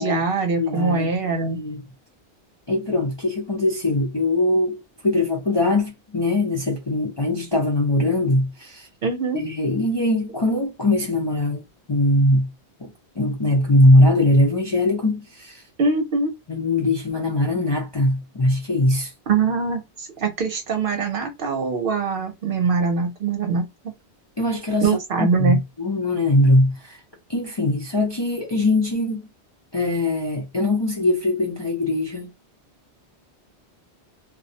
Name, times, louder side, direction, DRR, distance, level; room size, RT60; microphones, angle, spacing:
voice 1, 0.0-1.6 9.0-9.4 15.8-16.3 19.3-23.7 24.8-25.6, right 4 dB, 60° right, 0.8 m, -23 dB
voice 2, 0.6-1.1 1.4-1.8 2.7-8.9 9.3-11.6 11.9-12.5 12.8-15.6 16.5-19.1 24.4-24.9 25.2-27.0 27.3-29.2 29.7-32.3, left 1 dB, 35° left, 0.4 m, -21 dB
2.3 x 2.1 x 2.7 m
omnidirectional pair, 1.1 m